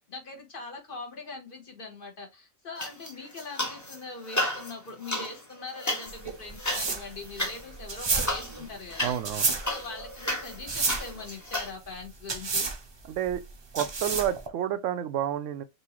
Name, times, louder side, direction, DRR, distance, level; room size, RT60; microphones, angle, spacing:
voice 1, 0.1-9.2 9.7-12.7, left 3 dB, 45° left, 1.3 m, -41 dB
sound 1, 2.8-4.0 4.2-11.7, left 1 dB, 15° left, 0.8 m, -33 dB
sound 2, 6.1-14.5, right 4 dB, 35° right, 0.5 m, -31 dB
voice 2, 9.0-9.5 13.0-13.4 13.7-15.6, right 10 dB, 90° right, 0.9 m, -29 dB
5.3 x 2.7 x 3.0 m
omnidirectional pair, 1.2 m